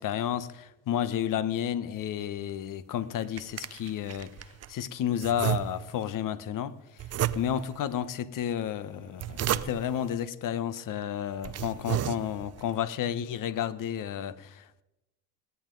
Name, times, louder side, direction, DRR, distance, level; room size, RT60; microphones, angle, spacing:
voice 1, 0.0-7.0 7.3-14.8, left 10 dB, 50° left, 1.1 m, -32 dB
sound 1, 3.0-4.7 5.2-6.1 7.0-7.8 8.9-10.0 10.8-10.9 11.3-12.6, right 11 dB, 40° right, 0.7 m, -33 dB
21.0 x 16.5 x 3.9 m
cardioid pair, 105°, 40 cm